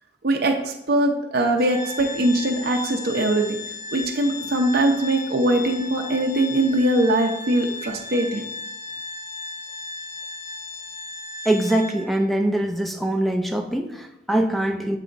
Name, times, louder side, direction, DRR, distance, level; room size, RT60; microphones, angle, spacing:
voice 1, 0.2-3.6 3.9-8.4, right 1 dB, 55° right, 2 dB, 0.6 m, -21 dB
Organ, 1.6-12.2, left 3 dB, 80° left, 2.2 m, -36 dB
voice 2, 11.5-15.0, right 1 dB, ahead, 3 dB, 0.4 m, -23 dB
7.3 x 3.4 x 3.9 m, 0.88 s
head